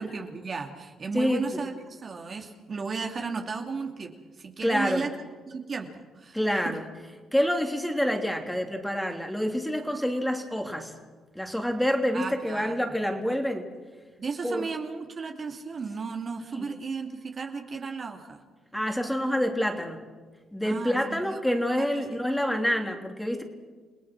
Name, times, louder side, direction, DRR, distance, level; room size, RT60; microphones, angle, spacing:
voice 1, 0.0-4.1 4.4-5.1 5.5-6.6 12.1-12.9 14.2-18.4 20.6-22.0, right 4 dB, 45° right, 3 dB, 2.6 m, -35 dB
voice 2, 1.1-1.6 4.6-5.1 6.3-6.8 7.3-10.9 11.3-13.6 14.4-14.7 16.5-16.7 18.7-20.0 20.5-23.4, equal, 5° left, 3 dB, 3.1 m, -27 dB
29.5 x 18.5 x 6.1 m, 1.4 s
cardioid pair, 90°, 0 cm